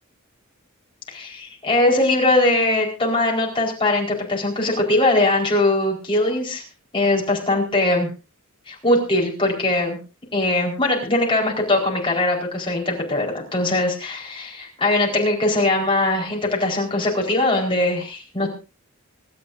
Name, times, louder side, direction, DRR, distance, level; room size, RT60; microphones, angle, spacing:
voice 1, 1.1-6.6 6.9-8.1 8.7-10.0 10.3-18.5, left 2 dB, 25° left, -1 dB, 4.6 m, -21 dB
25.5 x 12.5 x 2.7 m, 0.33 s
head